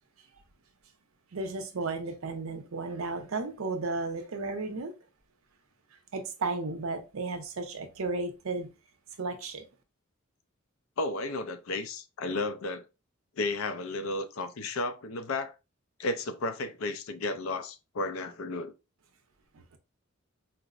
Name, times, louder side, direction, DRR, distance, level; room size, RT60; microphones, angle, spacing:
voice 1, 1.3-4.9 6.1-8.7 9.2-9.7 19.5-19.8, right 3 dB, 75° right, 0.6 m, -34 dB
voice 2, 11.0-12.9 13.4-15.5 16.0-18.7, left 2 dB, 70° left, 0.4 m, -33 dB
4.4 x 2.0 x 2.4 m
head